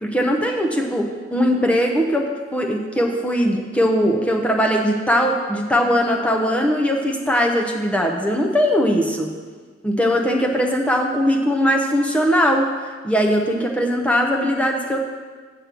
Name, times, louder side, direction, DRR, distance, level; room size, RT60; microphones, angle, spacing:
voice 1, 0.0-9.3 9.8-12.7 13.0-15.0, equal, 5° left, 1 dB, 0.7 m, -20 dB
7.4 x 5.4 x 7.4 m, 1.5 s
head